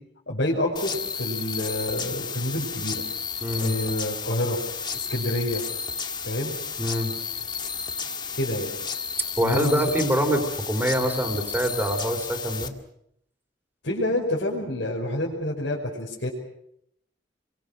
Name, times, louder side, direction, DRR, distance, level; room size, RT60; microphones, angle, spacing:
voice 1, 0.3-3.0 3.6-4.6 4.9-5.6 6.2-6.6 8.3-8.7 9.4-9.9 13.8-16.3, left 1 dB, 90° left, -5 dB, 5.7 m, -28 dB
sound 1, 0.8-12.7, left 6 dB, 25° left, 1.8 m, -32 dB
voice 2, 3.4-3.7 6.8-7.1 9.4-12.7, equal, 10° right, 4 dB, 3.5 m, -25 dB
28.5 x 24.0 x 6.5 m, 0.75 s
head